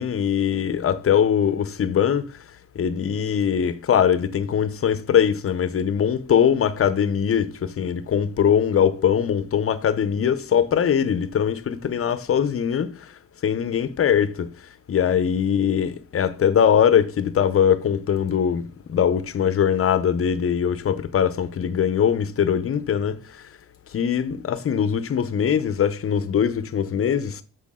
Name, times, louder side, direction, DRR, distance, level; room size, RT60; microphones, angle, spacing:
voice 1, 0.0-2.2 2.8-12.9 13.4-14.5 14.9-23.2 23.9-27.4, left 8 dB, 45° left, 0.9 m, -21 dB
8.2 x 7.0 x 3.8 m
cardioid pair, 90°, 30 cm